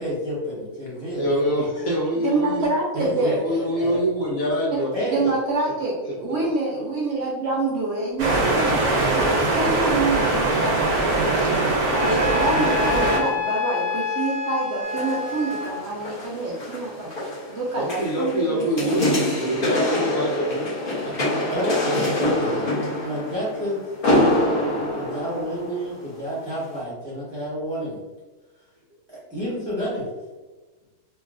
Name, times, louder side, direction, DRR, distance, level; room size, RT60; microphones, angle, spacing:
voice 1, 0.0-1.5 2.9-4.0 4.9-5.3 21.5-22.7 23.0-23.8 24.9-28.0 29.1-30.1, equal, 20° right, -8 dB, 0.8 m, -29 dB
voice 2, 1.0-2.7 3.2-4.9 6.0-6.1 6.4-6.5 17.7-20.7 21.0-21.2, equal, 70° left, -5 dB, 1.4 m, -25 dB
voice 3, 2.2-3.4 4.7-4.8 5.1-10.7 12.0-17.1 17.5-18.7, right 3 dB, 60° right, -4 dB, 0.8 m, -26 dB
sound 1, 8.2-13.2, right 2 dB, 90° right, 1.2 m, -21 dB
Wind instrument woodwind instrument, 11.9-15.8, left 5 dB, 10° left, 1.1 m, -27 dB
sound 2, 14.8-26.1 26.6-26.7, left 1 dB, 40° left, 1.0 m, -26 dB
3.1 x 2.6 x 2.5 m, 1.2 s
omnidirectional pair, 1.6 m